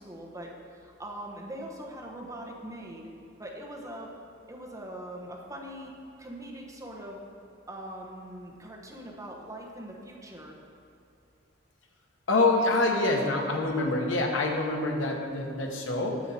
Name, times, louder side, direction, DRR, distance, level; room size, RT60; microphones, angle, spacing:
voice 1, 0.0-3.1 3.4-4.1 4.5-5.9 6.2-7.2 7.7-10.6, right 1 dB, 15° right, -1 dB, 1.1 m, -42 dB
voice 2, 12.3-16.2, left 2 dB, 80° left, 2 dB, 1.1 m, -26 dB
9.1 x 7.1 x 4.3 m, 2.7 s
head